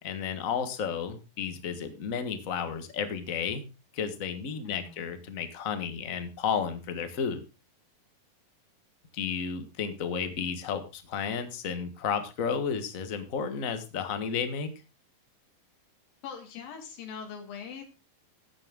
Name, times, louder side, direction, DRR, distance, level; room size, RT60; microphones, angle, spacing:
voice 1, 0.0-3.6 3.9-7.4 9.1-14.7, left 6 dB, 50° left, 8 dB, 0.9 m, -32 dB
voice 2, 4.6-5.0 16.2-17.8, left 7 dB, 85° left, 3 dB, 3.5 m, -42 dB
14.5 x 9.6 x 3.7 m, 0.30 s
omnidirectional pair, 4.0 m